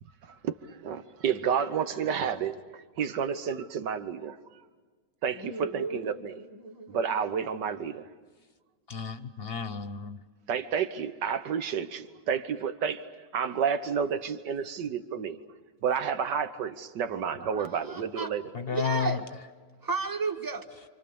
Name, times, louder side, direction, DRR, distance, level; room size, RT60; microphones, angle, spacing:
voice 1, 0.8-4.4 5.2-6.3 6.9-8.1 10.5-13.1 13.3-15.4 15.8-18.4, right 7 dB, 90° right, 1.7 m, -30 dB
voice 2, 5.3-7.1 17.4-18.3 18.7-19.2 19.8-20.7, right 4 dB, 15° right, 1.5 m, -34 dB
voice 3, 8.9-10.2 18.5-19.2, left 7 dB, 45° left, 0.9 m, -32 dB
28.5 x 26.5 x 7.0 m
omnidirectional pair, 1.8 m